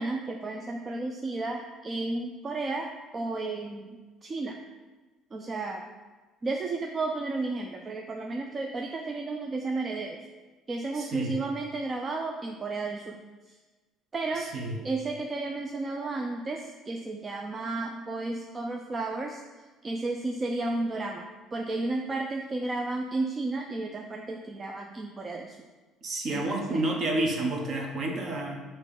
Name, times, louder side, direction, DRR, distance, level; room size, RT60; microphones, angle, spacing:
voice 1, 0.0-4.6 5.3-5.8 6.4-10.2 10.7-13.2 13.5-13.6 14.1-14.5 14.8-19.4 19.8-25.6 26.3-26.8, right 3 dB, 25° right, 2 dB, 0.4 m, -33 dB
voice 2, 10.9-11.4 14.4-14.8 26.0-28.6, right 2 dB, 45° right, 1 dB, 1.1 m, -30 dB
6.7 x 3.0 x 5.1 m, 1.3 s
cardioid pair, 135°, 0 cm